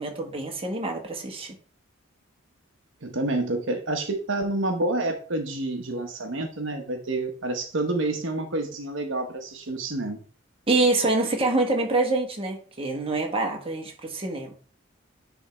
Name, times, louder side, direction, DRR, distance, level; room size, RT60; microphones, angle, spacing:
voice 1, 0.0-1.6 10.7-14.5, right 2 dB, 25° right, 1.4 m, -26 dB
voice 2, 3.0-10.2, right 2 dB, 65° right, 1.1 m, -28 dB
9.9 x 3.5 x 4.4 m
head